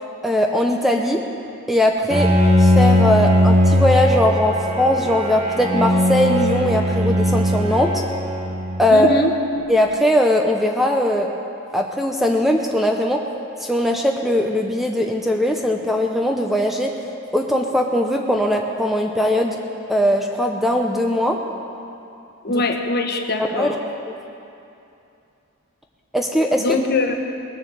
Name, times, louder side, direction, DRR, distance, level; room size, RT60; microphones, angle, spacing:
voice 1, 0.2-1.2 1.7-2.3 2.6-8.0 8.8-9.1 9.7-11.3 11.7-13.2 13.6-16.9 17.3-19.6 19.9-21.4 22.5-22.6 23.4-23.8 24.1-24.2 26.1-26.8, left 1 dB, ahead, 1 dB, 0.6 m, -20 dB
Bowed string instrument, 2.1-9.2, equal, 30° right, 1.2 m, -19 dB
voice 2, 8.9-9.3 22.4-23.8 26.6-27.1, left 2 dB, 45° left, 4 dB, 1.1 m, -22 dB
20.0 x 7.0 x 7.7 m, 2.7 s
head